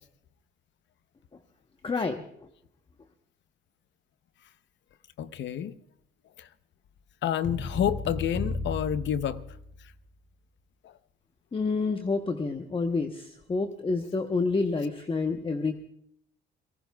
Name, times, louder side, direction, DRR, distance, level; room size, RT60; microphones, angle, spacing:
voice 1, 1.8-2.2 11.5-15.7, left 3 dB, 25° left, 5 dB, 1.0 m, -28 dB
voice 2, 5.2-5.7 6.4-6.5 7.2-9.4 10.8-10.9, left 9 dB, 70° left, 13 dB, 0.8 m, -29 dB
sound 1, 7.4-9.9, left 3 dB, 45° left, 3.2 m, -34 dB
30.0 x 18.5 x 2.3 m, 0.72 s
cardioid pair, 90°, 20 cm